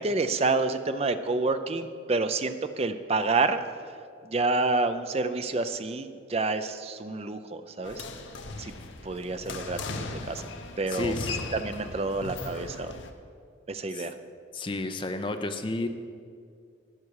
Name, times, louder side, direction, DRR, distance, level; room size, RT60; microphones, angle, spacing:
voice 1, 0.0-3.6 4.2-8.0 8.6-8.7 9.0-10.4 10.8-11.1 11.5-12.9 13.7-14.1, right 3 dB, 30° right, 10 dB, 0.5 m, -28 dB
sound 1, 7.8-13.1, left 3 dB, 75° left, 0.8 m, -38 dB
voice 2, 10.9-11.4 13.9-14.1 14.5-15.9, left 2 dB, 25° left, 7 dB, 0.5 m, -32 dB
12.0 x 9.7 x 4.7 m, 2.3 s
head